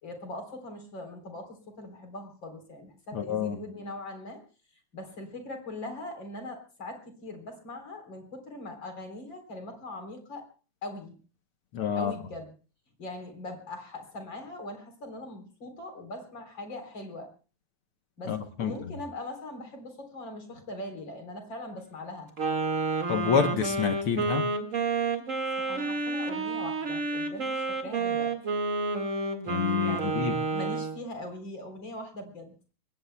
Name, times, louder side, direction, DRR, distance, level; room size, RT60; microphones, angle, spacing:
voice 1, 0.0-4.4 4.9-10.4 10.8-11.2 11.9-12.5 13.0-17.3 18.2-22.3 25.6-28.3 29.8-32.5, left 1 dB, 40° left, 5 dB, 4.4 m, -41 dB
voice 2, 3.1-3.6 11.7-12.1 18.3-18.7 23.1-24.5 29.5-30.4, left 7 dB, 60° left, 7 dB, 1.6 m, -28 dB
Wind instrument woodwind instrument, 22.4-31.0, right 3 dB, 30° right, 1.9 m, -30 dB
26.5 x 21.0 x 2.3 m, 0.37 s
omnidirectional pair, 3.3 m